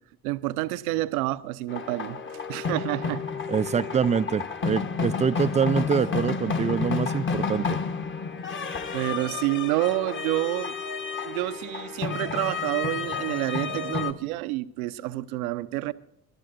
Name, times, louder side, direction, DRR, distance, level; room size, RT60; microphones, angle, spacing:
voice 1, 0.2-3.2 8.9-10.7 11.2-15.9, right 17 dB, 70° right, 0.7 m, -28 dB
sound 1, 1.7-14.1, left 5 dB, 25° left, 1.1 m, -31 dB
voice 2, 3.5-7.8, right 6 dB, 15° right, 0.4 m, -25 dB
22.0 x 12.5 x 2.6 m
figure-of-eight pair, 50°, 45 cm